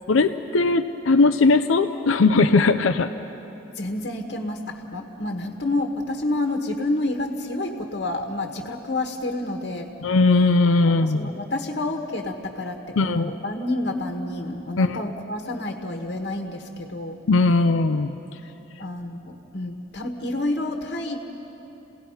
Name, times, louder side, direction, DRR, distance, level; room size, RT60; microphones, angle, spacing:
voice 1, 0.1-3.1 10.0-11.3 13.0-13.3 14.8-15.0 17.3-18.1, left 3 dB, 90° left, 9 dB, 0.6 m, -19 dB
voice 2, 3.7-9.9 11.0-17.2 18.8-21.2, left 2 dB, 55° left, 2 dB, 1.3 m, -29 dB
29.5 x 17.5 x 5.6 m, 3.0 s
head